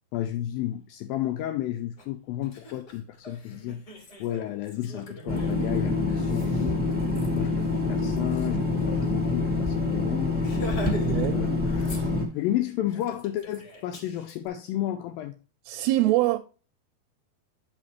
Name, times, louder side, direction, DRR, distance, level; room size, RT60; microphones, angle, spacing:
voice 1, 0.1-3.8 4.2-6.8 7.3-10.5 11.3-11.5 12.3-15.4, left 13 dB, 90° left, 2.0 m, -32 dB
Laughter, 2.0-2.1 2.4-9.1 9.4-9.5 9.8-10.0 10.4-11.3 11.6-12.4 12.9-14.3, equal, 35° left, 1.9 m, -42 dB
sound 1, 5.3-12.2, left 3 dB, 5° right, 0.8 m, -26 dB
voice 2, 11.0-11.5 11.9-12.1 15.7-16.4, right 16 dB, 85° right, 2.5 m, -25 dB
8.6 x 5.8 x 3.0 m
omnidirectional pair, 4.7 m